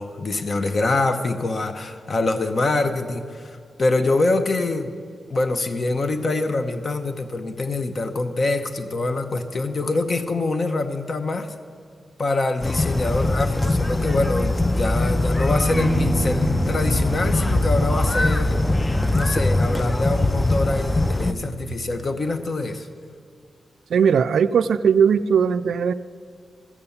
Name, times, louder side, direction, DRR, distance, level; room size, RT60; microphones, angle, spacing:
voice 1, 0.0-4.9 5.3-11.5 12.2-18.6 19.1-22.9, left 2 dB, 45° left, 8 dB, 0.8 m, -25 dB
sound 1, 12.6-21.3, left 2 dB, 15° left, 0.4 m, -21 dB
sound 2, 15.7-22.0, right 4 dB, 40° right, 0.5 m, -32 dB
voice 2, 23.9-25.9, right 7 dB, 90° right, 13 dB, 0.3 m, -18 dB
15.0 x 6.8 x 7.1 m, 2.1 s
wide cardioid pair, 130°, 0 cm